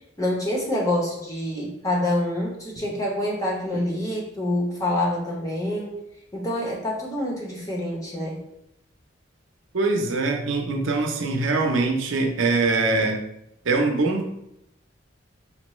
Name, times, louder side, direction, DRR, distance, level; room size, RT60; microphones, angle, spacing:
voice 1, 0.2-5.9 6.3-8.4, left 1 dB, 15° left, -3 dB, 0.9 m, -26 dB
voice 2, 9.7-13.2 13.6-14.4, right 3 dB, 85° right, 3 dB, 0.7 m, -23 dB
5.6 x 2.2 x 3.1 m, 0.81 s
head